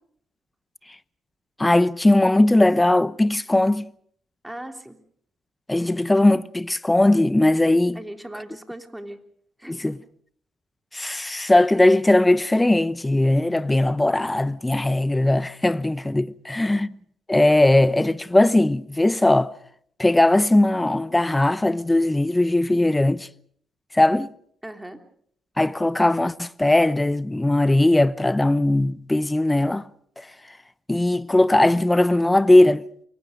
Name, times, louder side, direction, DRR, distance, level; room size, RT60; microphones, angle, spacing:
voice 1, 1.6-3.9 5.7-8.0 9.7-10.0 10.9-17.0 17.3-19.5 20.0-23.3 23.9-24.3 25.6-29.9 30.2-30.6 30.9-32.8, left 1 dB, 10° left, 0.9 m, -19 dB
voice 2, 4.4-5.0 7.9-9.2 9.6-9.9 24.6-25.0, right 1 dB, 5° right, 3.2 m, -38 dB
29.0 x 23.5 x 5.2 m
cardioid pair, 90°, 0 cm